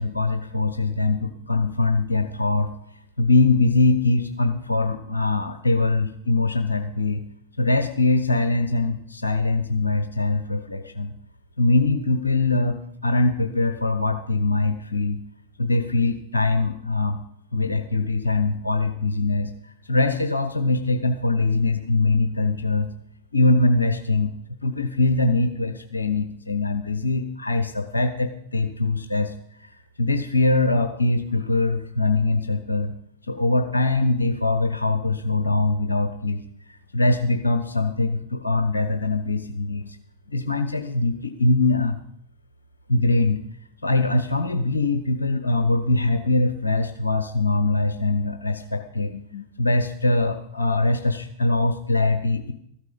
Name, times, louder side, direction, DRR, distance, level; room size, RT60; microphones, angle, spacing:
voice 1, 0.0-2.7 3.2-7.2 7.6-11.1 11.6-15.2 15.6-17.2 17.5-19.5 19.9-22.9 23.3-24.3 24.6-29.3 30.0-32.9 33.3-36.4 36.9-40.0 40.3-42.0 42.9-43.4 43.8-52.5, left 2 dB, 80° left, 8 dB, 0.9 m, -22 dB
14.0 x 12.5 x 5.3 m, 0.74 s
figure-of-eight pair, 90°, 0 cm